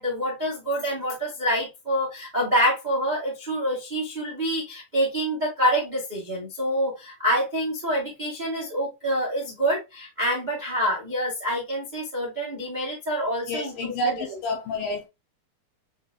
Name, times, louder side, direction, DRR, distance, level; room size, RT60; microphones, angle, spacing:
voice 1, 0.0-14.3, equal, 30° right, 0.8 m, -26 dB
voice 2, 13.5-15.1, left 1 dB, 75° left, 2.3 m, -29 dB
6.8 x 3.1 x 2.3 m
omnidirectional pair, 4.6 m